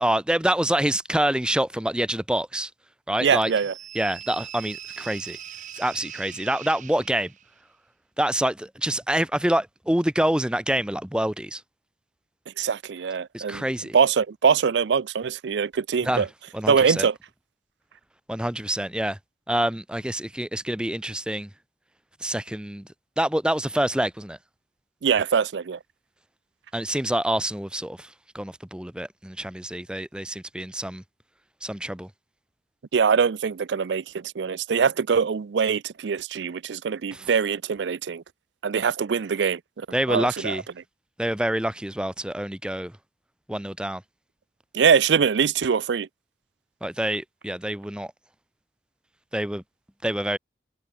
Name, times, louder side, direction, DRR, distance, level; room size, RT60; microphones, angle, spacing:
voice 1, 0.0-2.7 3.1-3.5 3.9-5.4 5.8-7.3 8.2-11.6 13.3-14.0 16.0-16.3 16.5-17.1 18.3-19.2 19.5-21.5 22.2-22.9 23.2-24.4 26.7-31.0 31.6-32.1 37.1-37.3 39.9-40.6 41.2-42.9 43.5-44.0 46.8-48.1 49.3-49.6 50.0-50.4, right 1 dB, 5° right, 0.6 m, -26 dB
voice 2, 3.2-3.7 12.6-13.6 13.9-16.3 16.7-17.1 25.0-25.8 32.9-38.2 38.6-40.6 44.7-46.1, right 6 dB, 85° right, 0.5 m, -23 dB
sound 1, 3.4-7.6, right 10 dB, 45° right, 4.7 m, -41 dB
head